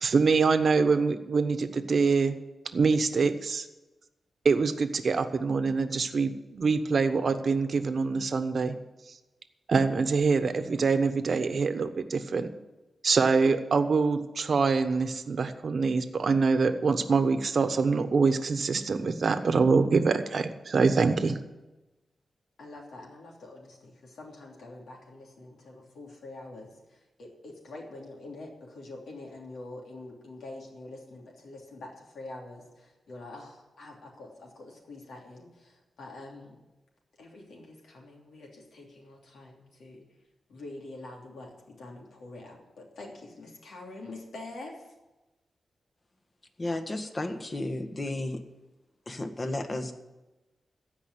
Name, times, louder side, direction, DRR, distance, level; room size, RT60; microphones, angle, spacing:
voice 1, 0.0-2.4 2.7-3.7 4.4-8.8 9.7-12.5 13.0-21.4, right 4 dB, 60° right, 9 dB, 1.0 m, -25 dB
voice 2, 22.6-36.6 37.2-40.0 40.5-44.9, left 2 dB, 90° left, -1 dB, 3.0 m, -45 dB
voice 3, 46.6-48.4 49.1-49.9, left 2 dB, 35° left, 7 dB, 1.5 m, -33 dB
15.5 x 5.4 x 9.8 m, 1.1 s
cardioid pair, 80°, 0 cm